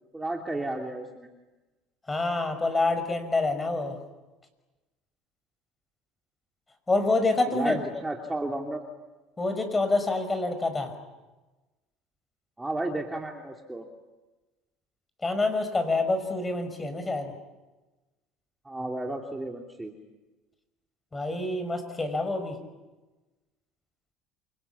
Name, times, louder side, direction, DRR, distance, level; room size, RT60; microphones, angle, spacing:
voice 1, 0.1-1.3 7.5-8.8 12.6-13.9 18.6-19.9, right 2 dB, 10° right, 1 dB, 2.8 m, -33 dB
voice 2, 2.1-4.0 6.9-7.8 9.4-10.9 15.2-17.3 21.1-22.6, left 2 dB, 15° left, 9 dB, 5.5 m, -27 dB
28.0 x 24.5 x 8.5 m, 1.2 s
supercardioid pair, 110°, 0 cm